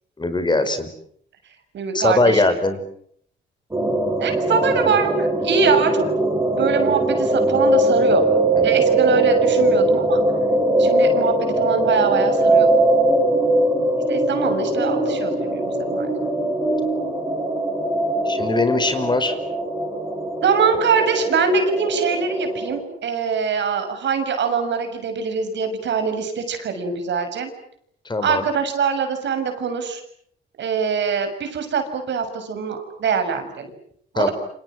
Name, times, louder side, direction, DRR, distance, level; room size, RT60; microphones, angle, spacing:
voice 1, 0.2-0.9 1.9-2.8 8.5-8.7 18.2-19.3 28.0-28.4 34.1-34.3, left 2 dB, 20° left, 10 dB, 5.1 m, -20 dB
voice 2, 1.7-2.4 4.2-6.1 6.5-8.2 8.6-10.2 10.8-12.7 14.1-16.1 20.4-27.5 28.2-30.0 30.6-33.7 34.1-34.3, right 5 dB, 65° right, 7 dB, 6.8 m, -23 dB
sound 1, 3.7-22.8, right 1 dB, 15° right, 7.8 m, -20 dB
28.5 x 27.0 x 7.6 m, 0.66 s
cardioid pair, 90°, 20 cm